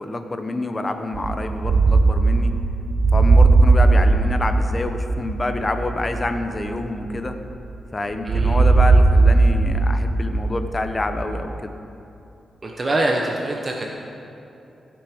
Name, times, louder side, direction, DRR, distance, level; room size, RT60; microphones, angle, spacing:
voice 1, 0.0-2.6 3.1-7.4 7.9-11.7, left 2 dB, 25° left, 7 dB, 0.8 m, -27 dB
sound 1, 1.1-7.8 8.3-11.5, right 3 dB, 55° right, 0.7 m, -18 dB
voice 2, 8.2-8.6 12.6-13.9, right 2 dB, 35° right, 0 dB, 1.0 m, -24 dB
15.5 x 6.2 x 5.0 m, 2.8 s
cardioid pair, 85°, 0 cm